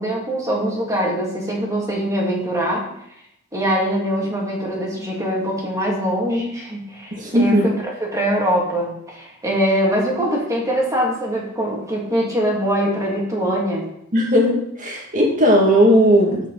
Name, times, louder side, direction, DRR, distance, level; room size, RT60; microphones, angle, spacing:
voice 1, 0.0-2.9 3.5-7.7 8.0-13.9, equal, 15° right, -3 dB, 2.5 m, -22 dB
voice 2, 7.1-7.7 14.1-16.4, equal, 40° right, -1 dB, 2.3 m, -16 dB
15.0 x 5.4 x 4.2 m, 0.75 s
head